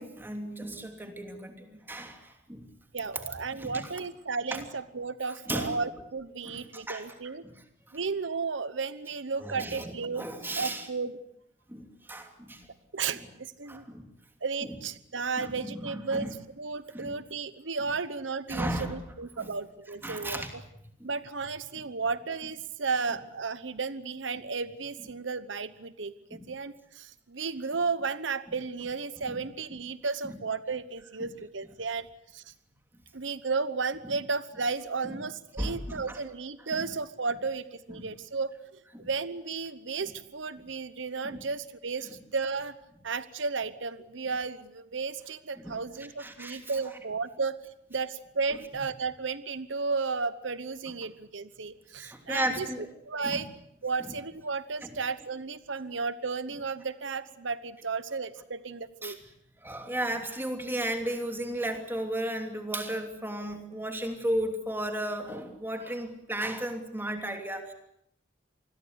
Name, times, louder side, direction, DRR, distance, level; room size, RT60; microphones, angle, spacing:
voice 1, 0.0-2.7 3.1-3.2 3.5-3.8 4.5-4.6 5.5-5.7 6.4-7.0 7.4-7.5 9.4-10.9 11.7-12.7 13.7-14.0 14.6-14.8 15.4-16.3 16.9-17.1 18.5-19.0 19.4-19.5 20.0-20.5 21.0-21.1 26.3-26.4 30.2-30.3 31.2-31.3 35.0-35.1 35.6-36.2 36.7-36.8 37.9-38.1 38.9-39.1 41.2-41.4 45.6-45.7 46.2-46.6 52.0-52.9 53.2-53.4 54.8-54.9 59.0-59.1 59.6-67.7, right 1 dB, 10° right, 5 dB, 3.0 m, -34 dB
voice 2, 2.9-7.4 7.9-10.3 10.6-11.1 12.9-13.8 14.4-16.3 16.6-20.6 21.0-32.1 32.3-32.5 33.1-42.8 43.0-47.6 47.9-52.7 53.0-53.5 53.8-59.2, right 4 dB, 80° right, 14 dB, 1.0 m, -33 dB
27.5 x 21.0 x 8.1 m, 0.73 s
head